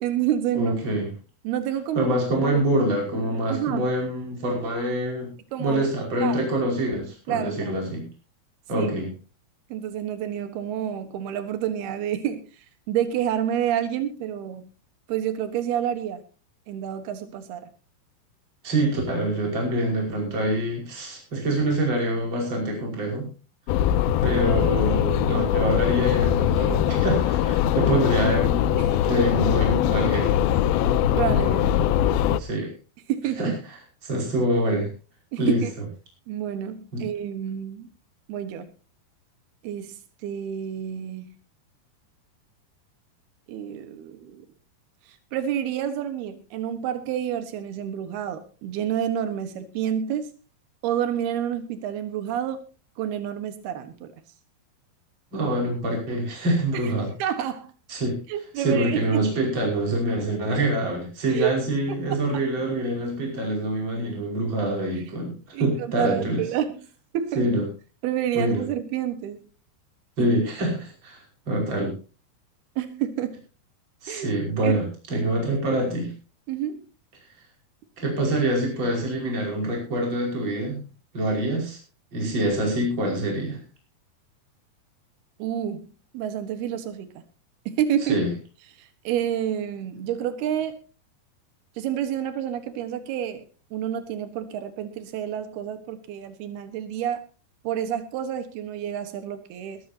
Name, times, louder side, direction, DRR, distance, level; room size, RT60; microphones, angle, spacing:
voice 1, 0.0-0.8 1.4-2.1 2.4-2.6 3.5-3.9 5.5-5.9 6.2-6.4 7.3-7.8 8.8-8.9 9.7-12.5 12.9-14.7 15.1-16.2 16.7-17.7 28.8-29.3 31.1-31.9 33.1-33.6 35.3-35.7 36.3-37.9 38.3-38.7 39.6-41.3 43.5-44.4 45.1-50.3 50.8-52.6 53.0-54.1 56.7-56.9 57.2-57.7 58.3-59.2 61.3-61.5 61.9-62.2 65.5-66.9 67.1-67.4 68.0-69.5 70.2-70.3 72.8-73.4 74.1-74.3 74.6-74.8 76.5-76.8 85.4-85.9 86.1-87.2 87.7-88.2 88.8-90.8 91.8-93.4 93.7-97.3 97.6-99.8, right 10 dB, 85° right, 9 dB, 3.4 m, -29 dB
voice 2, 0.5-1.1 2.0-5.3 5.6-8.1 8.7-9.1 18.6-23.3 24.2-28.6 29.1-30.4 32.4-32.7 33.4-33.5 34.0-34.9 35.4-35.6 36.9-37.0 55.3-57.1 57.9-58.2 58.6-66.4 67.3-67.6 68.3-68.6 70.2-72.0 74.0-76.1 78.0-80.8 81.1-81.8 82.1-83.6 88.1-88.3, right 1 dB, 30° right, 0 dB, 6.0 m, -25 dB
sound 1, 23.7-32.4, left 11 dB, 80° left, 2.5 m, -22 dB
21.0 x 13.5 x 2.9 m, 0.35 s
omnidirectional pair, 4.4 m